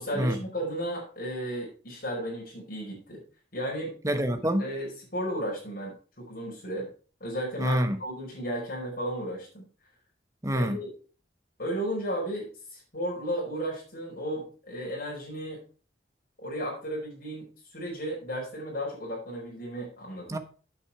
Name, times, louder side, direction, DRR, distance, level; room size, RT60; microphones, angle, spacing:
voice 1, 0.0-3.2 3.5-3.9 4.6-6.9 7.2-9.6 10.5-10.9 11.6-15.6 16.4-20.4, equal, 55° left, 5.1 m, -34 dB
voice 2, 4.0-4.6 7.6-8.0 10.4-10.8 20.3-20.4, equal, 20° right, 1.1 m, -26 dB
8.5 x 8.0 x 4.8 m
head